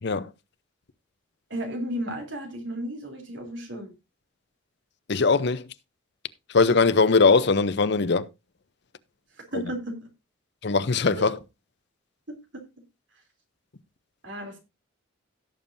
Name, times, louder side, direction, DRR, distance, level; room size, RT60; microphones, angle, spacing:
voice 1, 1.5-3.9 9.5-10.0 11.2-11.3 12.3-12.7 14.2-14.6, right 1 dB, 60° right, 3.3 m, -34 dB
voice 2, 5.1-5.7 6.5-8.3 10.6-11.4, left 4 dB, 55° left, 0.7 m, -20 dB
17.0 x 7.1 x 2.7 m
head